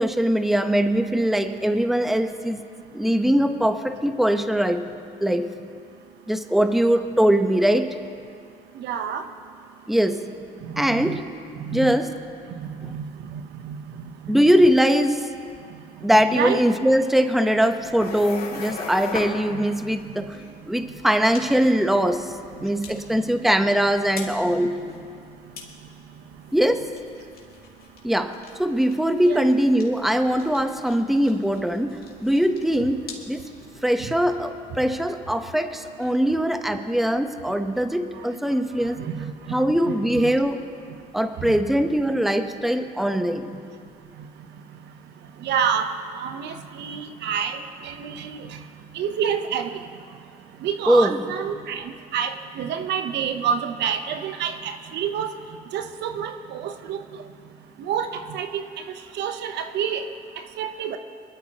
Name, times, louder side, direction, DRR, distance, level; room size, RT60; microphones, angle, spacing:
voice 1, 0.0-2.7 2.9-4.9 5.2-5.6 6.3-7.9 9.9-10.3 10.8-11.2 11.7-12.1 12.8-12.9 14.3-15.2 16.0-22.3 22.6-24.9 26.5-26.9 28.0-33.5 33.8-39.0 39.5-40.6 41.1-43.6 50.9-51.2, equal, ahead, 7 dB, 0.9 m, -21 dB
voice 2, 8.8-9.2 10.6-11.2 11.6-12.0 12.8-13.8 16.3-16.6 29.2-29.5 39.0-39.3 39.9-40.3 41.5-41.6 45.4-48.6 48.9-49.8 50.6-55.3 55.7-57.0 57.8-58.6 59.1-60.1 60.6-61.0, right 8 dB, 75° right, 7 dB, 0.9 m, -28 dB
sound 1, 17.6-33.9, left 4 dB, 55° left, 2.4 m, -41 dB
22.0 x 13.0 x 2.9 m, 2.3 s
supercardioid pair, 70°, 18 cm